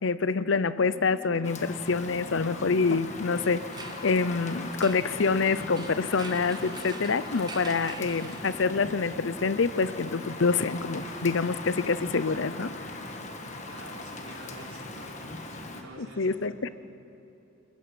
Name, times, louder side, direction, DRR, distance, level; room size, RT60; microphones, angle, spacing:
voice 1, 0.0-3.6 4.0-12.7 16.0-16.7, left 4 dB, 65° left, 15 dB, 0.6 m, -26 dB
sound 1, 0.8-1.6 2.1-3.6 4.1-5.6 6.1-7.6 8.1-9.6 10.1-11.0, left 1 dB, 15° left, 1.4 m, -49 dB
Rain, 1.4-15.8, left 2 dB, 35° left, 1.6 m, -40 dB
sound 2, 3.2-8.9, right 4 dB, 20° right, 0.8 m, -46 dB
voice 2, 13.7-15.1 15.7-16.3, right 2 dB, 80° right, -3 dB, 5.1 m, -47 dB
25.5 x 14.5 x 8.6 m, 2.8 s
head